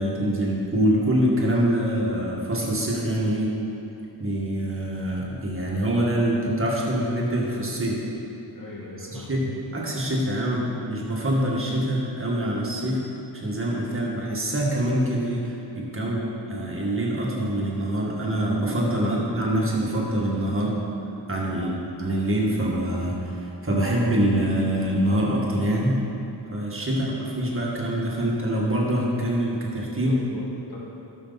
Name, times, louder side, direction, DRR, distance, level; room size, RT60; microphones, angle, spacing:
voice 1, 0.0-3.5 4.2-8.0 9.0-13.0 13.3-16.2 16.5-20.8 21.3-21.7 22.0-26.0 26.5-30.2, right 1 dB, 30° right, -4 dB, 2.1 m, -25 dB
voice 2, 8.5-9.4 15.9-16.2 19.0-19.2 21.5-21.7 26.9-27.0 30.0-30.8, left 2 dB, 50° left, -4 dB, 2.0 m, -41 dB
11.5 x 6.8 x 4.2 m, 2.9 s
cardioid pair, 70°, 43 cm